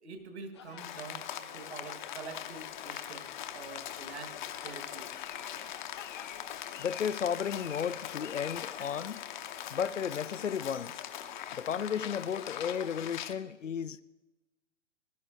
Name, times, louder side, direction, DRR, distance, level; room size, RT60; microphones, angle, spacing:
voice 1, 0.0-1.3 1.5-5.1, right 5 dB, 60° right, 1.7 m, -46 dB
sound 1, 0.5-13.1, left 9 dB, 25° left, 0.4 m, -52 dB
Rain, 0.8-13.3, left 10 dB, 40° left, 0.8 m, -42 dB
voice 2, 6.8-9.2 9.7-10.9 11.6-14.0, left 8 dB, 75° left, 0.6 m, -33 dB
20.5 x 12.0 x 2.5 m
figure-of-eight pair, 115°, 37 cm